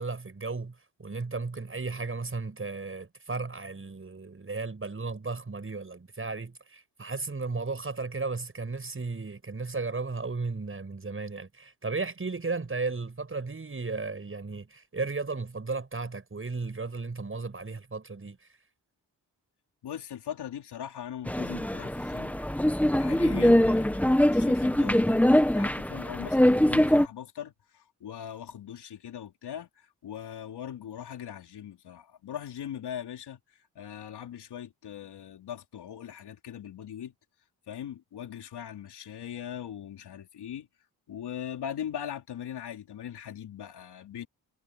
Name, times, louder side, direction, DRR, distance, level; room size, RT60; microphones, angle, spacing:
voice 1, 0.0-18.6, right 3 dB, 30° right, 7.8 m, -35 dB
voice 2, 19.8-33.4 33.8-37.1 37.7-40.7 41.1-44.3, left 9 dB, 85° left, 3.7 m, -40 dB
sound 1, 21.3-27.1, left 1 dB, 5° left, 1.5 m, -23 dB
cardioid pair, 85°, 39 cm